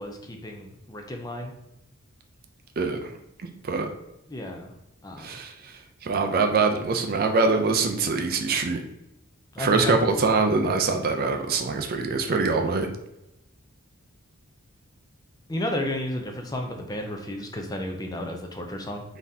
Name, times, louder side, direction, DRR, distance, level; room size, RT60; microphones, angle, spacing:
voice 1, 0.0-1.5 4.3-4.7 5.0-5.3 9.5-9.9 15.5-19.0, left 1 dB, 15° left, 3 dB, 0.5 m, -32 dB
voice 2, 2.8-3.1 3.4-3.9 5.2-8.8 9.6-12.9, right 4 dB, 40° right, 5 dB, 0.4 m, -24 dB
3.9 x 3.6 x 2.7 m, 0.90 s
head